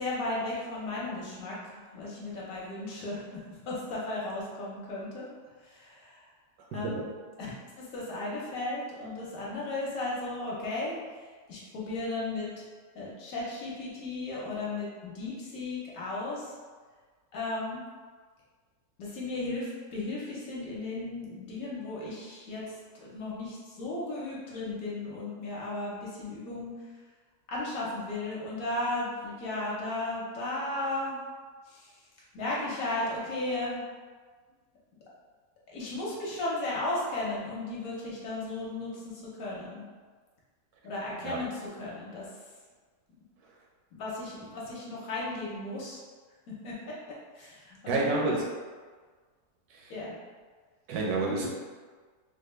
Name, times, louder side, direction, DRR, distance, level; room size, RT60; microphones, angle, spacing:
voice 1, 0.0-5.2 5.6-6.2 6.7-7.0 7.8-11.0 11.5-12.6 12.9-16.5 17.3-17.8 19.0-22.7 23.0-26.7 27.5-31.2 31.7-31.9 32.3-33.8 35.7-39.8 40.8-42.3 44.0-46.0 46.6-46.9 47.4-48.0 49.9-50.2, left 2 dB, 65° left, -5 dB, 1.1 m, -35 dB
voice 2, 47.9-48.4 50.9-51.5, right 3 dB, 75° right, -2 dB, 1.0 m, -28 dB
3.3 x 2.1 x 3.2 m, 1.5 s
omnidirectional pair, 1.7 m